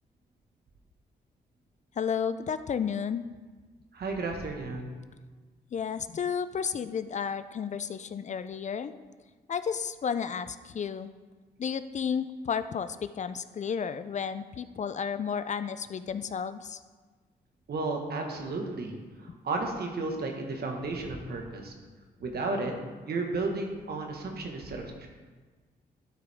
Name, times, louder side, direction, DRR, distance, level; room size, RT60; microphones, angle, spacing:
voice 1, 2.0-3.3 5.7-8.9 9.5-11.1 11.6-16.8, left 7 dB, 45° left, 13 dB, 0.4 m, -32 dB
voice 2, 3.9-4.9 17.7-21.7 22.2-22.7 23.0-25.1, right 3 dB, 65° right, 2 dB, 1.5 m, -33 dB
12.5 x 4.9 x 3.5 m, 1.4 s
cardioid pair, 65°, 18 cm